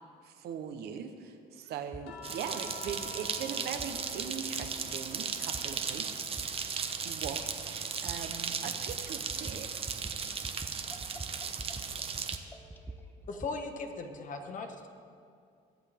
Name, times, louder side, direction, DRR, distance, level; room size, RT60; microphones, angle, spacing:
voice 1, 0.2-6.1 6.4-6.6 6.9-10.1, right 7 dB, 70° right, 7 dB, 1.1 m, -41 dB
sound 1, 1.9-2.1 2.9-3.0 3.8-3.9 4.6-4.7 5.5-5.6 6.4-6.5 7.2-7.3 8.1-8.2 8.9-9.0 9.3-9.6 9.9-10.2 10.4-10.7 11.0-11.9 12.1-13.5, right 3 dB, 10° right, 0.7 m, -44 dB
sound 2, 2.1-6.5 6.9-8.5 10.1-10.2, left 1 dB, 90° left, 1.6 m, -51 dB
sound 3, 2.2-12.4, right 6 dB, 35° right, 0.9 m, -36 dB
voice 2, 10.9-13.3 14.4-14.7, equal, 10° left, 3 dB, 1.5 m, -55 dB
voice 3, 13.3-14.9, left 3 dB, 50° left, 5 dB, 1.4 m, -38 dB
22.5 x 8.1 x 3.6 m, 2.3 s
cardioid pair, 110°, 17 cm